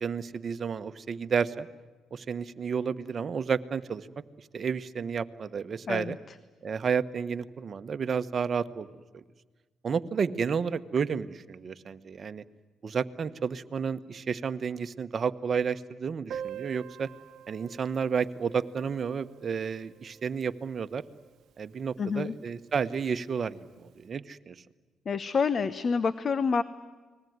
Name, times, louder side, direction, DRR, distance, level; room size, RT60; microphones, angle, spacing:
voice 1, 0.0-1.7 2.1-4.1 4.5-6.2 6.6-8.9 9.1-9.2 9.8-12.4 12.8-17.1 17.5-21.0 21.6-24.5, right 6 dB, 45° right, 11 dB, 1.2 m, -31 dB
Piano, 16.3-21.7 21.9-22.0 22.2-22.4 22.7-22.8 23.6-23.7, right 9 dB, 75° right, 0.8 m, -45 dB
voice 2, 22.0-22.3 25.1-26.6, left 5 dB, 45° left, 15 dB, 0.9 m, -27 dB
29.5 x 21.0 x 9.5 m, 1.3 s
cardioid pair, 90°, 0 cm